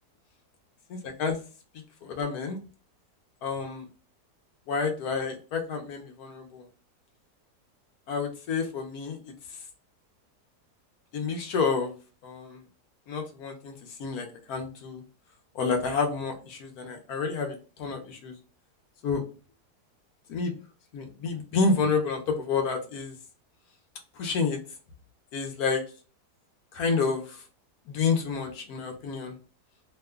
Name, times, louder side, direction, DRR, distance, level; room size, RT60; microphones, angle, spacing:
voice 1, 0.9-1.4 2.0-2.6 3.4-3.8 4.7-6.6 8.1-9.2 11.1-11.9 12.2-12.6 13.1-13.7 14.0-15.0 15.5-18.3 19.0-19.2 20.3-20.5 20.9-23.2 24.2-24.6 25.3-25.8 26.7-27.4 27.9-29.4, left 4 dB, 70° left, 3 dB, 1.1 m, -29 dB
3.0 x 2.2 x 3.5 m, 0.36 s
omnidirectional pair, 1.8 m